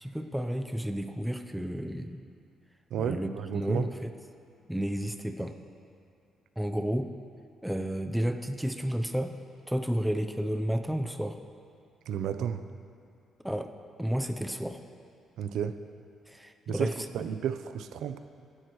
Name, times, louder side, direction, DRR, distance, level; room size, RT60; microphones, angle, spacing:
voice 1, 0.0-2.2 3.0-4.1 4.7-5.6 6.6-7.1 7.6-9.3 9.7-11.4 13.4-13.7 14.0-14.8 16.3-16.9, equal, 5° right, 6 dB, 0.6 m, -31 dB
voice 2, 2.9-3.9 12.1-12.6 15.4-15.8 16.7-18.2, right 8 dB, 80° right, 10 dB, 0.6 m, -32 dB
20.0 x 11.0 x 3.1 m, 2.4 s
cardioid pair, 90°, 0 cm